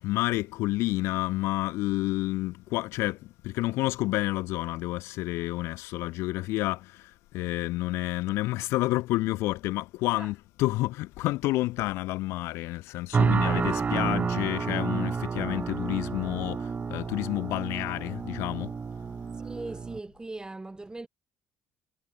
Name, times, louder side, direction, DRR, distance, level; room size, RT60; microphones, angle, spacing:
voice 1, 0.0-18.7, left 19 dB, 60° left, 0.7 m, -29 dB
sound 1, 13.1-20.0, right 5 dB, 30° right, 1.7 m, -30 dB
voice 2, 19.3-21.1, right 2 dB, 15° right, 3.2 m, -39 dB
figure-of-eight pair, 50°, 5 cm